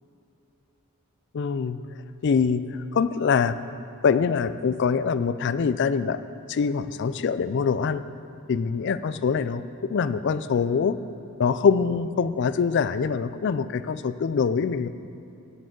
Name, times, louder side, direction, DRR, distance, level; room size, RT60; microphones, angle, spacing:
voice 1, 1.3-1.8 2.2-3.6 4.0-6.2 6.5-8.0 8.5-11.0 11.4-14.9, left 6 dB, 55° left, 14 dB, 0.4 m, -24 dB
18.0 x 7.7 x 3.8 m, 2.9 s
head